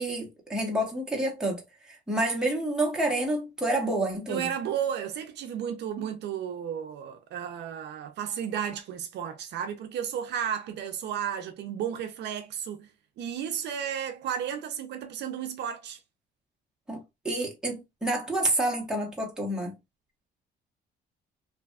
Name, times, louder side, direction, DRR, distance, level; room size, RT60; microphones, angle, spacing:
voice 1, 0.0-4.5 16.9-17.0 17.2-19.7, right 1 dB, 5° right, 0.8 m, -28 dB
voice 2, 4.3-12.9 13.2-16.0, right 9 dB, 65° right, 0.4 m, -33 dB
2.6 x 2.2 x 2.3 m
cardioid pair, 125°, 19 cm